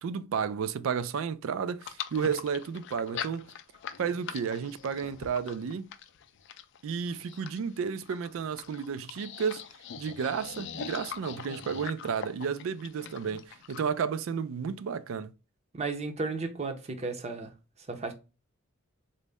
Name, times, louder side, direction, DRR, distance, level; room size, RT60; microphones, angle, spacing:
voice 1, 0.0-3.5 4.0-5.9 6.8-9.6 10.0-15.3, right 6 dB, 70° right, 0.3 m, -32 dB
sound 1, 1.8-13.9, left 8 dB, 60° left, 0.4 m, -42 dB
voice 2, 15.7-17.5 17.9-18.1, right 3 dB, 30° right, 0.6 m, -34 dB
3.9 x 2.1 x 3.4 m
head